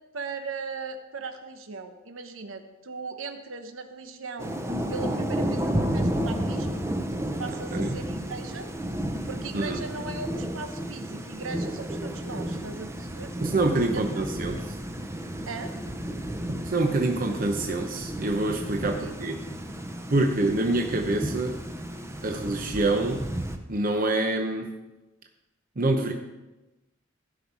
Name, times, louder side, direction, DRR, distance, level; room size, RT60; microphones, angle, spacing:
voice 1, 0.1-4.5 4.9-6.8 7.4-8.7 9.3-13.3 13.9-14.3 15.5-15.7 18.8-19.2, right 4 dB, 90° right, 7 dB, 1.0 m, -38 dB
Thunder / Rain, 4.4-23.6, right 1 dB, 15° right, 0.7 m, -32 dB
voice 2, 13.4-14.6 16.6-19.4 20.1-21.6 22.2-23.3 23.7-24.7 25.8-26.1, right 2 dB, 45° right, 4 dB, 0.8 m, -26 dB
16.0 x 5.6 x 4.7 m, 1.1 s
head